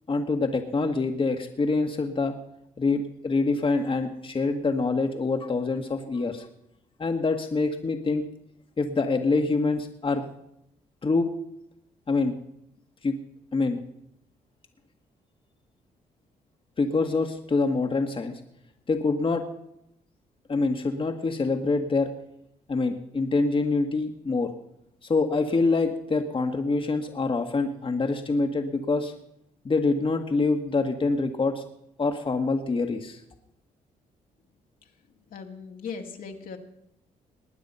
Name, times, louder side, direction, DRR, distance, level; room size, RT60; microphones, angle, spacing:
voice 1, 0.1-2.3 2.8-6.5 7.0-8.2 8.8-10.2 11.0-11.3 12.1-12.3 13.0-13.2 13.5-13.8 16.8-18.4 18.9-19.4 20.5-22.1 22.7-24.5 25.0-29.1 29.6-31.6 32.0-33.2, left 3 dB, 35° left, 5 dB, 1.6 m, -25 dB
voice 2, 35.3-36.6, left 5 dB, 65° left, 3 dB, 2.0 m, -38 dB
19.5 x 9.4 x 5.5 m, 0.78 s
supercardioid pair, 65°, 16 cm